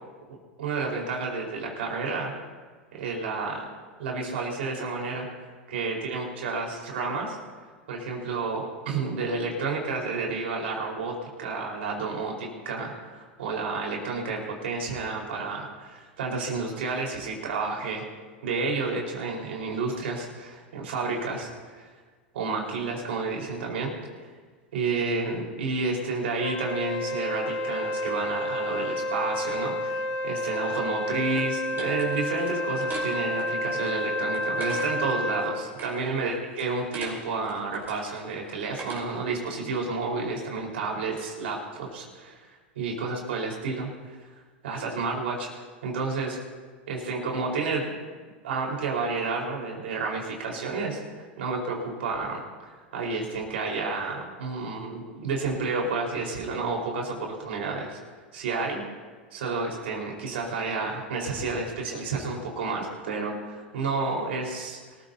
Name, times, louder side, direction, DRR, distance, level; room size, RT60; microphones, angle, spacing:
voice 1, 0.6-2.3 2.9-3.6 4.0-5.3 5.7-7.4 7.9-18.0 18.4-21.9 22.3-23.9 24.7-42.5 42.7-44.2 44.6-45.5 45.8-46.4 46.9-48.0 48.4-52.4 52.9-58.0 58.3-58.8 59.3-64.8, right 4 dB, 75° right, -1 dB, 4.4 m, -30 dB
Wind instrument woodwind instrument, 26.4-35.5, left 1 dB, 75° left, 2.4 m, -30 dB
sound 1, 31.0-39.4, right 3 dB, 30° right, 4.4 m, -43 dB
25.5 x 14.5 x 2.8 m, 1.5 s
hypercardioid pair, 100°, 6 cm